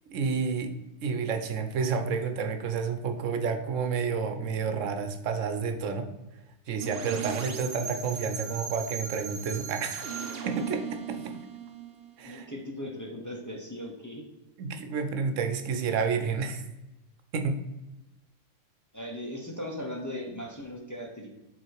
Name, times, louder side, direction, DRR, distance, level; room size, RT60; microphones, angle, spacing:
voice 1, 0.1-0.7 1.0-6.1 6.7-10.1 10.5-11.4 12.2-12.5 14.6-16.6 17.3-17.6, right 5 dB, 80° right, 7 dB, 1.1 m, -30 dB
sound 1, 6.8-12.6, right 7 dB, 55° right, 0.9 m, -38 dB
voice 2, 12.2-14.2 18.9-21.3, left 1 dB, 15° left, -1 dB, 0.9 m, -38 dB
7.7 x 3.7 x 4.6 m, 0.98 s
omnidirectional pair, 1.3 m